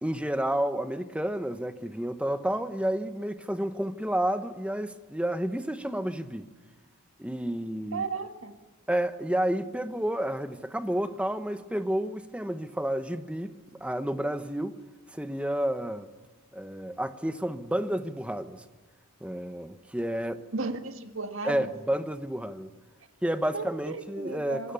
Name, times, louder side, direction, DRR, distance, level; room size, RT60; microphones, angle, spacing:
voice 1, 0.0-6.5 7.2-8.0 8.9-14.8 15.1-16.1 16.5-18.6 19.2-20.4 21.4-22.7 23.2-24.7, right 1 dB, 5° right, 1.0 m, -30 dB
voice 2, 7.9-8.5 20.5-21.7 23.5-24.7, right 4 dB, 60° right, 1.8 m, -34 dB
26.0 x 20.0 x 7.0 m
head